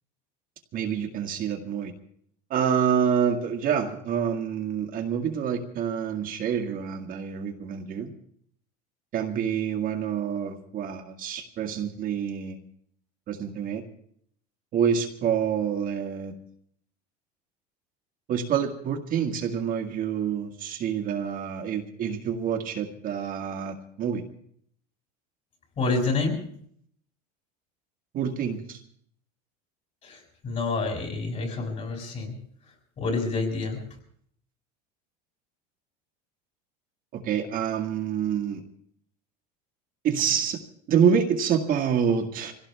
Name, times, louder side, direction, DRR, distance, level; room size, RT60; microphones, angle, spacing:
voice 1, 0.7-1.9 2.5-8.1 9.1-12.6 13.3-13.8 14.7-16.3 18.3-24.2 28.1-28.8 37.1-38.6 40.0-40.6 40.9-42.5, right 7 dB, 45° right, 3 dB, 1.9 m, -27 dB
voice 2, 25.8-26.4 30.0-32.3 32.6-33.8, left 3 dB, 35° left, 1 dB, 5.9 m, -28 dB
24.5 x 17.0 x 3.5 m, 0.64 s
supercardioid pair, 130°, 21 cm